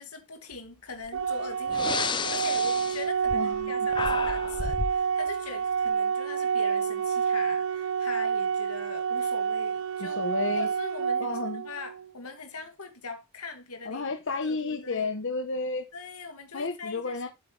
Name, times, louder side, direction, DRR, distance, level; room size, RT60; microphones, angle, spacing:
voice 1, 0.0-10.2 10.5-15.1 15.9-17.3, left 4 dB, 85° left, 2.5 m, -42 dB
Breathing, 1.1-1.2 1.7-3.7 3.9-5.0, left 5 dB, 20° left, 0.4 m, -32 dB
Organ, 1.1-12.1, right 7 dB, 65° right, 0.7 m, -28 dB
voice 2, 3.3-3.7 10.0-10.7 11.2-11.7 13.9-15.9 16.5-17.3, left 3 dB, 55° left, 1.1 m, -31 dB
8.3 x 7.6 x 3.3 m
head